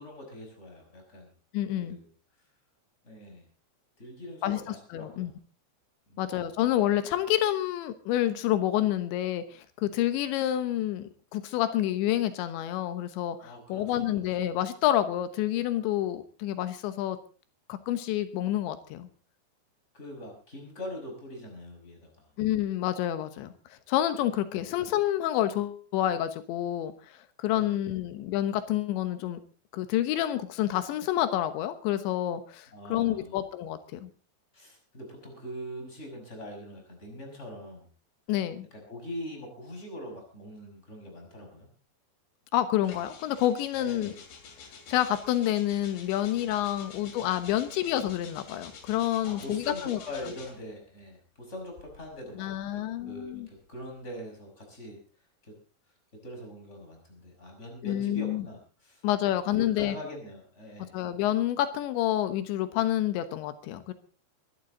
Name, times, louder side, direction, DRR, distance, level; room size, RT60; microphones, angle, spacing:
voice 1, 0.0-1.3 1.8-2.1 3.0-3.5 4.0-5.3 6.1-6.3 13.4-14.2 19.9-22.3 24.5-24.7 27.4-27.8 32.7-33.4 34.5-37.9 38.7-41.7 43.8-44.2 46.8-46.9 47.6-47.7 49.2-55.0 55.4-55.6 56.2-61.0, equal, 15° left, 2 dB, 5.4 m, -43 dB
voice 2, 1.5-2.0 4.4-5.3 6.2-17.2 17.7-19.1 22.4-26.9 27.4-29.4 29.7-34.1 38.3-38.7 42.5-44.1 44.9-50.0 52.4-53.5 57.8-58.5 59.0-60.0 60.8-63.9, left 12 dB, 90° left, 11 dB, 3.5 m, -28 dB
sound 1, 42.8-50.7 51.6-54.1, left 5 dB, 70° left, 4.6 m, -49 dB
23.0 x 12.0 x 3.9 m, 0.36 s
omnidirectional pair, 5.1 m